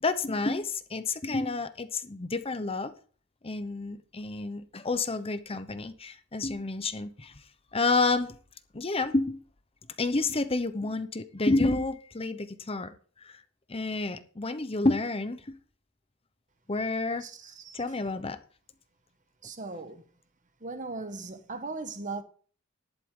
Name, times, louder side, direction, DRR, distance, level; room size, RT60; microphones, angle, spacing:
voice 1, 0.0-2.9 3.4-7.4 7.7-8.4 8.7-9.4 10.0-12.9 13.2-13.4 13.7-15.6 16.7-17.3 17.7-18.4, left 3 dB, 25° left, 0.8 m, -29 dB
voice 2, 17.2-17.8 19.4-20.0 20.6-22.2, right 3 dB, 35° right, 1.3 m, -38 dB
12.5 x 11.0 x 3.8 m
head